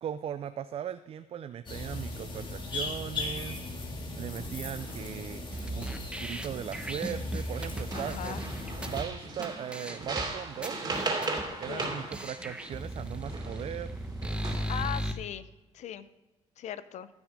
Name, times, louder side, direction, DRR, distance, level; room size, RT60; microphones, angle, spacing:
voice 1, 0.0-3.6 4.2-5.4 5.7-5.9 6.2-8.4 8.8-10.9 11.6-13.9, right 9 dB, 50° right, 12 dB, 0.4 m, -38 dB
sound 1, 1.7-9.0, left 2 dB, 40° left, 2.2 m, -37 dB
sound 2, 4.8-5.2 5.5-6.2 6.7-7.3 7.6-13.7 14.2-14.8, right 3 dB, 35° right, 2.7 m, -38 dB
sound 3, 5.5-9.0 9.4-9.5 9.7-10.2 10.6-11.4 11.8-11.9 12.1-15.1, right 1 dB, 10° right, 0.9 m, -36 dB
voice 2, 7.9-8.5 11.7-11.9 14.7-15.5 15.7-16.1 16.6-17.1, left 10 dB, 65° left, 14 dB, 0.6 m, -38 dB
15.0 x 6.3 x 3.7 m, 1.1 s
cardioid pair, 90°, 13 cm